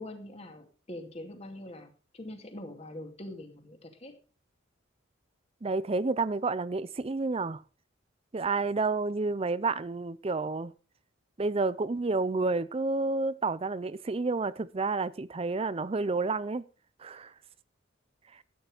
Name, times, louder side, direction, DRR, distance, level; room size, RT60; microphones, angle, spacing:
voice 1, 0.0-4.1, left 1 dB, 30° left, 2.3 m, -43 dB
voice 2, 5.6-7.6 8.3-10.7 11.4-16.6 17.0-17.3, right 3 dB, 30° right, 0.5 m, -30 dB
13.5 x 9.4 x 4.9 m
head